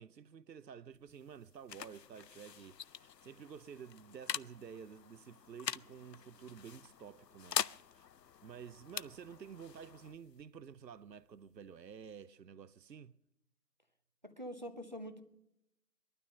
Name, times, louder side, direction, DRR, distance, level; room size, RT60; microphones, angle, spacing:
voice 1, 0.0-7.7 7.9-8.1 8.4-13.1, right 7 dB, 80° right, 0.7 m, -51 dB
sound 1, 0.9-12.3, left 8 dB, 75° left, 0.6 m, -45 dB
voice 2, 14.2-15.2, equal, 30° right, 0.8 m, -45 dB
21.0 x 12.5 x 5.5 m
figure-of-eight pair, 160°, 50 cm